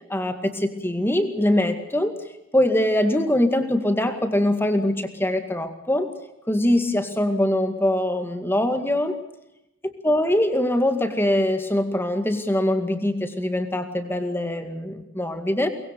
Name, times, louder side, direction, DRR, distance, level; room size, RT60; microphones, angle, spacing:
voice 1, 0.1-2.1 2.5-6.1 6.5-9.1 9.8-15.7, left 1 dB, 10° left, 7 dB, 2.1 m, -23 dB
23.5 x 21.0 x 6.9 m, 0.89 s
head